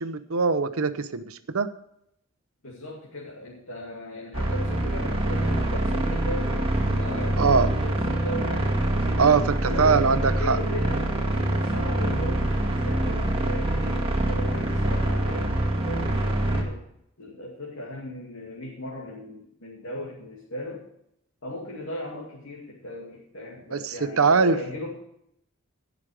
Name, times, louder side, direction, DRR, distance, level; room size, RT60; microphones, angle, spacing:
voice 1, 0.0-1.7 7.4-7.7 9.2-10.6 23.7-24.6, right 5 dB, 85° right, 12 dB, 0.8 m, -22 dB
voice 2, 2.6-8.7 9.3-11.2 11.5-16.1 16.4-16.8 17.2-20.9 21.4-25.0, left 1 dB, 75° left, -4 dB, 2.5 m, -37 dB
sound 1, 4.3-16.6, right 1 dB, 25° right, 2.2 m, -25 dB
17.5 x 6.3 x 5.0 m, 0.76 s
head